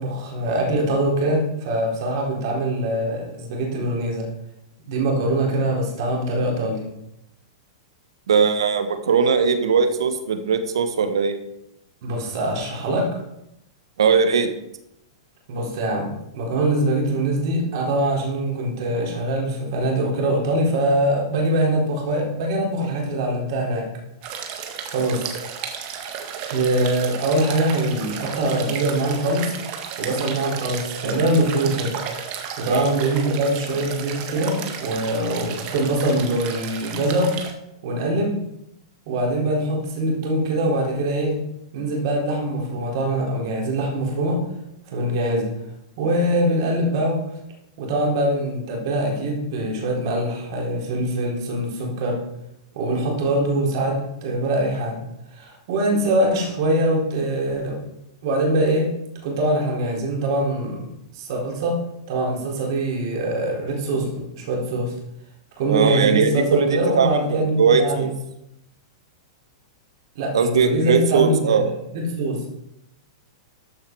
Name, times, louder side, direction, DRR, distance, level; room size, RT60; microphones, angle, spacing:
voice 1, 0.0-4.3 4.9-6.8 12.0-13.2 15.5-23.9 24.9-25.4 26.5-29.5 30.0-31.9 32.6-37.4 37.8-38.4 39.1-41.4 41.7-44.4 44.9-45.5 46.0-47.2 47.8-52.2 52.7-55.0 55.3-57.8 58.2-58.9 59.2-61.8 62.1-64.9 65.6-68.1 70.2-72.4, right 1 dB, 60° right, -1 dB, 4.1 m, -23 dB
voice 2, 8.3-11.4 14.0-14.5 32.7-32.9 65.7-66.7 66.9-68.1 70.3-71.7, right 6 dB, 80° right, 9 dB, 1.5 m, -19 dB
sound 1, 24.2-37.5, right 7 dB, 45° right, 1.8 m, -33 dB
13.5 x 5.9 x 4.7 m, 0.83 s
hypercardioid pair, 120°, 3 cm